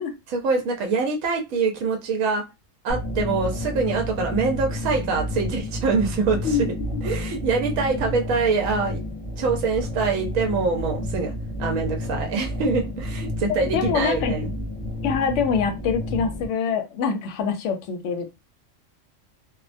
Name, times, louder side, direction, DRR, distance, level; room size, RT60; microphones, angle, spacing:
voice 1, 0.3-2.4 2.8-6.7 7.0-9.0 9.4-11.3 11.6-14.5, right 4 dB, 80° right, 2 dB, 1.0 m, -24 dB
sound 1, 2.9-16.5, left 1 dB, 15° left, 0.6 m, -30 dB
voice 2, 13.5-14.4 15.0-18.3, left 6 dB, 70° left, 7 dB, 0.8 m, -25 dB
2.4 x 2.1 x 2.5 m, 0.24 s
omnidirectional pair, 1.4 m